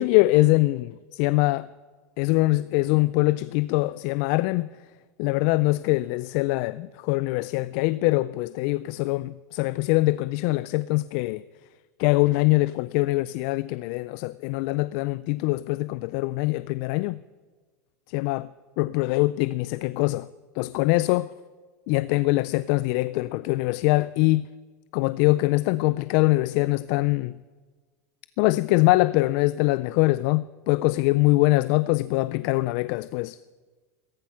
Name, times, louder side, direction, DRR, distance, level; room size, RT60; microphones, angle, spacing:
voice 1, 0.0-1.7 2.2-4.7 5.2-11.4 12.0-17.2 18.1-18.5 18.8-20.3 20.6-21.3 21.9-24.4 24.9-27.4 28.4-33.4, left 20 dB, 55° left, 0.4 m, -23 dB
15.5 x 14.5 x 5.7 m
supercardioid pair, 120°, 9 cm